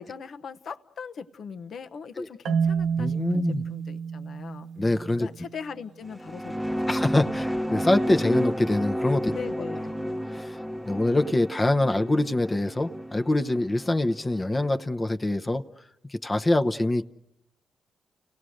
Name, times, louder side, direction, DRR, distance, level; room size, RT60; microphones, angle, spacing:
voice 1, 0.0-4.7 5.2-6.6 9.3-10.2, left 6 dB, 70° left, 0.9 m, -40 dB
Marimba xylophone, 2.4-5.4, right 6 dB, 75° right, 0.7 m, -29 dB
voice 2, 3.0-3.6 4.8-5.3 6.9-9.4 10.3-10.6 10.8-15.6 16.1-17.0, left 2 dB, 25° left, 0.8 m, -24 dB
sound 1, 6.0-14.7, equal, ahead, 0.9 m, -31 dB
29.5 x 17.5 x 6.4 m
supercardioid pair, 55°, 0 cm